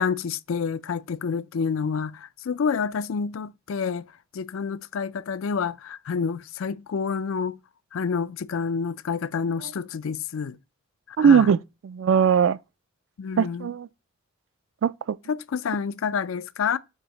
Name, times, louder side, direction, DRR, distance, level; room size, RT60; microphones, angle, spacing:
voice 1, 0.0-4.0 4.3-7.6 7.9-10.6 11.1-11.5 13.2-13.7 15.3-16.8, left 6 dB, 75° left, 0.4 m, -28 dB
voice 2, 11.2-11.6 11.8-12.6 13.4-13.9 14.8-15.2, right 7 dB, 65° right, 0.3 m, -19 dB
7.3 x 2.7 x 5.0 m
head